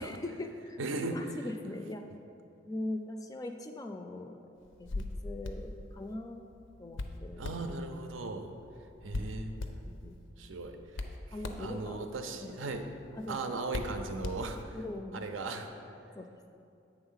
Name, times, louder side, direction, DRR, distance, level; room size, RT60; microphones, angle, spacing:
voice 1, 0.0-0.8 1.1-2.0 2.6-4.4 4.8-6.4 6.8-8.0 9.8-10.2 11.3-12.0 12.4-12.6 13.1-13.5 14.7-15.3 16.1-16.3, left 2 dB, 20° left, 5 dB, 0.3 m, -41 dB
voice 2, 0.8-1.2 7.4-8.5 9.0-9.5 10.4-11.1 11.6-12.8 13.3-14.8 15.1-15.7, right 3 dB, 90° right, 6 dB, 0.6 m, -37 dB
Hands, 4.6-14.9, left 2 dB, 75° left, 0.5 m, -42 dB
8.0 x 3.6 x 5.6 m, 2.6 s
head